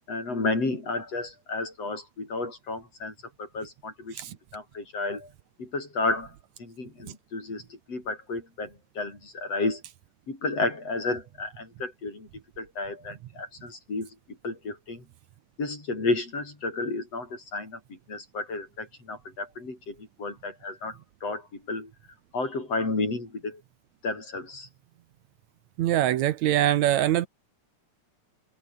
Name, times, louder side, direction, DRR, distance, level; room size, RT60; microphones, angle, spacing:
voice 1, 0.1-5.3 5.6-6.3 6.6-9.8 10.3-12.3 12.6-15.0 15.6-21.9 22.3-23.6 24.0-24.7, left 3 dB, 50° left, 8.5 m, -32 dB
voice 2, 25.8-27.3, right 12 dB, 70° right, 2.1 m, -23 dB
omnidirectional pair, 3.5 m